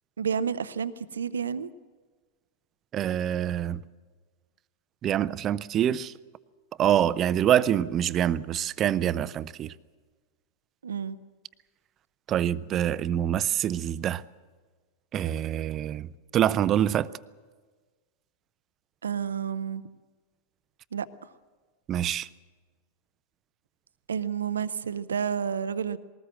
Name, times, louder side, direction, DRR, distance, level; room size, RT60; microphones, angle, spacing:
voice 1, 0.2-1.7 10.8-11.2 19.0-19.8 20.9-21.1 24.1-26.0, right 7 dB, 70° right, 0.7 m, -30 dB
voice 2, 2.9-3.8 5.0-6.1 6.8-9.7 12.3-14.2 15.1-17.1 21.9-22.3, right 10 dB, 30° right, 0.6 m, -25 dB
20.5 x 19.0 x 7.6 m
figure-of-eight pair, 90°, 0 cm